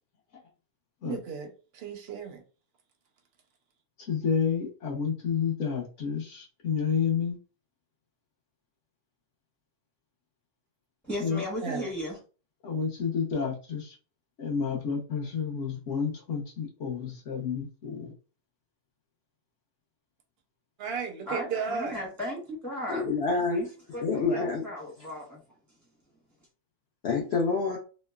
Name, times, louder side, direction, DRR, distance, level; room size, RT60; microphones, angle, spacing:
voice 1, 1.0-1.5 1.7-2.4 11.6-11.9 20.8-22.0, right 5 dB, 60° right, 0.6 m, -34 dB
voice 2, 4.0-7.4 11.2-11.5 12.6-13.9 14.4-18.1, left 6 dB, 55° left, 1.0 m, -30 dB
voice 3, 11.0-12.2 21.3-23.0 23.5-23.7 23.9-25.4, equal, ahead, 0.7 m, -36 dB
voice 4, 22.9-23.7 24.0-24.7 27.0-27.8, left 4 dB, 80° left, 0.5 m, -27 dB
3.0 x 2.1 x 2.2 m
omnidirectional pair, 1.6 m